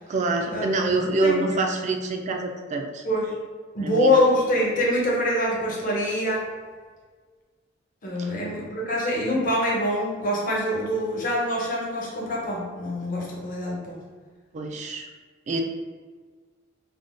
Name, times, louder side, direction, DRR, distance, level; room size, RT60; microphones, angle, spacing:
voice 1, 0.1-3.1 3.8-4.2 8.2-8.3 14.5-15.1 15.5-15.6, right 3 dB, 40° right, 3 dB, 0.3 m, -26 dB
voice 2, 3.0-3.4 3.7-6.5 8.0-14.0, left 1 dB, 45° left, -3 dB, 0.7 m, -24 dB
3.5 x 2.2 x 2.5 m, 1.5 s
head